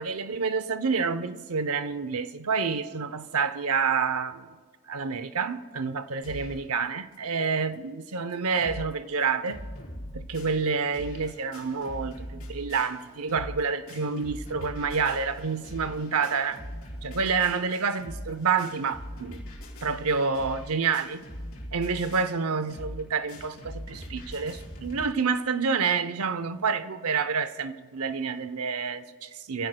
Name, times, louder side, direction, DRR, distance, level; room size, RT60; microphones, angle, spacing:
voice 1, 0.0-4.5 4.9-9.6 10.1-16.6 17.0-19.4 19.8-21.2 21.7-29.7, right 5 dB, 85° right, 0.7 m, -28 dB
sound 1, 6.2-6.7 7.1-7.2 7.4-7.5 8.0-8.1 8.3-8.9 9.2-25.1, equal, 70° left, 4.0 m, -41 dB
28.0 x 16.5 x 2.3 m
head